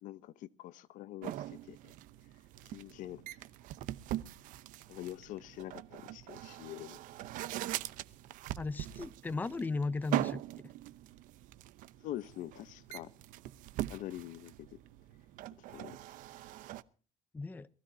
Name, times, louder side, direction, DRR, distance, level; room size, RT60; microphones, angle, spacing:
voice 1, 0.0-1.8 2.7-3.2 4.9-7.0 12.0-13.1 13.9-14.8 15.7-16.0, left 13 dB, 70° left, 0.9 m, -45 dB
sound 1, 1.2-16.8, right 14 dB, 75° right, 0.9 m, -42 dB
voice 2, 8.6-10.4 17.3-17.7, left 3 dB, 15° left, 0.7 m, -36 dB
23.0 x 15.5 x 2.8 m
cardioid pair, 155°, 14 cm